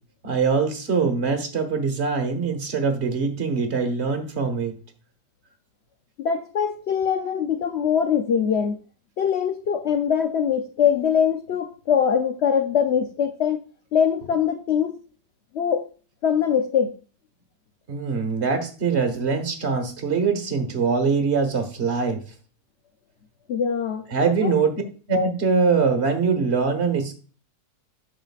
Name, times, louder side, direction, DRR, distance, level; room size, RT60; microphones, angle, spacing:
voice 1, 0.2-4.7 17.9-22.2 24.1-24.7 25.1-27.1, right 5 dB, 45° right, 5 dB, 1.5 m, -23 dB
voice 2, 6.2-8.8 9.2-13.6 13.9-15.0 15.5-15.9 16.2-16.9 23.5-24.1 24.4-24.5, left 7 dB, 65° left, 7 dB, 0.6 m, -22 dB
8.9 x 6.4 x 2.4 m, 0.39 s
omnidirectional pair, 1.8 m